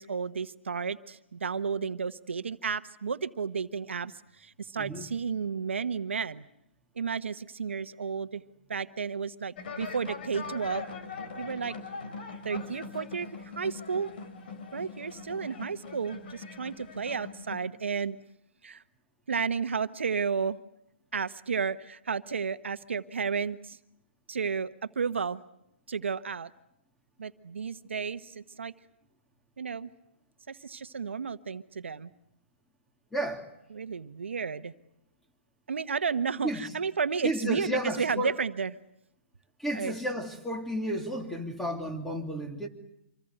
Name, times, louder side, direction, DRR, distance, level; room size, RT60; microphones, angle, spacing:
voice 1, 0.0-6.4 7.0-8.4 8.7-10.9 11.4-11.8 12.4-13.3 13.6-14.1 14.7-18.2 18.6-18.8 19.3-20.6 21.1-23.8 24.3-25.4 25.9-26.5 27.2-28.7 29.6-29.9 30.5-32.1 33.7-34.7 35.7-38.7 39.7-39.9, right 6 dB, 80° right, 1.3 m, -32 dB
sound 1, 9.6-17.6, left 4 dB, 50° left, 4.4 m, -42 dB
voice 2, 33.1-33.5 36.4-36.6 37.2-38.4 39.6-42.7, equal, 5° left, 2.8 m, -32 dB
26.5 x 23.5 x 8.0 m
hypercardioid pair, 145°, 6 cm